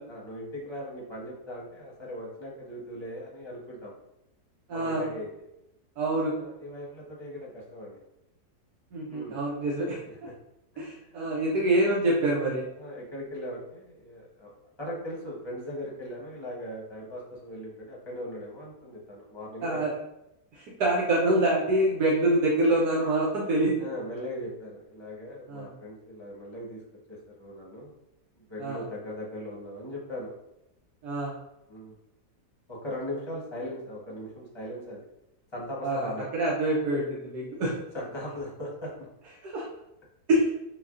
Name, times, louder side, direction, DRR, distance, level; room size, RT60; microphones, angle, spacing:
voice 1, 0.1-4.0 4.7-5.3 6.3-8.0 9.1-9.4 10.1-10.3 10.7-11.3 12.8-14.5 14.8-19.8 23.7-26.8 27.1-27.9 28.4-30.3 31.7-32.0 32.7-35.1 35.5-36.3 37.9-38.9, left 1 dB, 20° left, -4 dB, 0.8 m, -39 dB
voice 2, 4.7-5.0 6.0-6.3 8.9-10.0 10.8-12.6 19.6-19.9 20.5-23.7 25.5-25.7 28.6-28.8 31.0-31.3 35.8-37.7 39.4-39.6 40.3-40.5, right 1 dB, 75° right, -5 dB, 1.3 m, -26 dB
6.4 x 2.2 x 2.5 m, 0.86 s
omnidirectional pair, 1.7 m